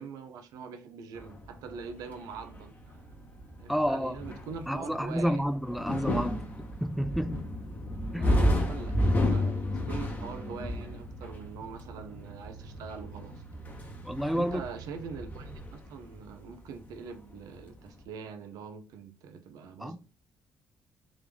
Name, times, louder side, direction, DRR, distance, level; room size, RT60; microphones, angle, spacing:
voice 1, 0.0-2.8 3.6-5.4 8.2-13.4 13.8-13.9 14.3-20.0, right 5 dB, 85° right, 0.7 m, -43 dB
sound 1, 1.2-17.1 17.3-18.0, left 1 dB, 25° left, 1.0 m, -32 dB
sound 2, 2.4-15.7, right 5 dB, 45° right, 0.8 m, -49 dB
voice 2, 3.7-4.2 4.7-6.5 6.8-7.4 8.1-8.3 14.0-14.6 19.8-20.0, equal, ahead, 0.4 m, -30 dB
3.8 x 3.1 x 3.4 m
cardioid pair, 100°, 6 cm